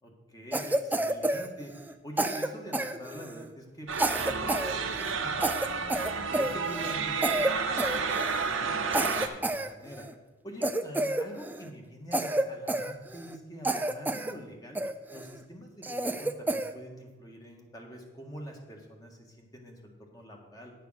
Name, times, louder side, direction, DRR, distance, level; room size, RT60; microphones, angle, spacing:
voice 1, 0.0-5.8 6.1-10.1 10.4-14.8 15.1-20.7, equal, 20° left, 1 dB, 1.6 m, -46 dB
Cough, 0.5-1.9 2.2-3.4 3.9-4.7 5.0-5.1 5.4-7.0 7.2-7.5 7.8-8.4 8.9-10.1 10.6-11.7 12.1-13.4 13.6-14.3 14.8-15.3 15.8-16.7, right 1 dB, 10° right, 0.4 m, -30 dB
sound 1, 3.9-9.3, right 5 dB, 85° right, 1.0 m, -31 dB
10.0 x 6.6 x 6.4 m, 1.2 s
head